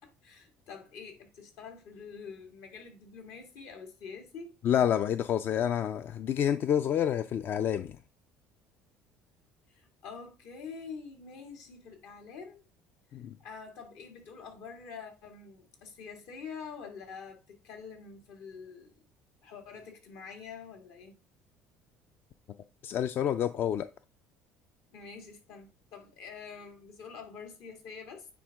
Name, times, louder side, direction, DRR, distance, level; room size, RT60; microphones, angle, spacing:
voice 1, 0.0-4.5 9.7-12.6 13.4-18.9 19.4-21.2 24.9-28.3, left 5 dB, 75° left, 2.2 m, -46 dB
voice 2, 4.6-8.0 13.1-13.3 22.8-23.9, left 9 dB, 50° left, 0.4 m, -28 dB
9.2 x 4.3 x 3.5 m
cardioid pair, 110°, 5 cm